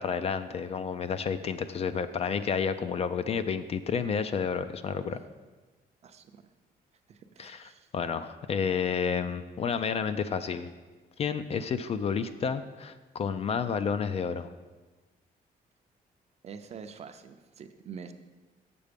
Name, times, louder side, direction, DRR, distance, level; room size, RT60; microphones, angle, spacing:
voice 1, 0.0-5.2 7.4-10.7 11.2-14.5, left 6 dB, 40° left, 11 dB, 0.4 m, -30 dB
voice 2, 6.0-6.5 7.1-7.9 16.4-18.1, right 6 dB, 40° right, 8 dB, 0.5 m, -46 dB
7.3 x 6.8 x 5.2 m, 1.3 s
cardioid pair, 160°, 16 cm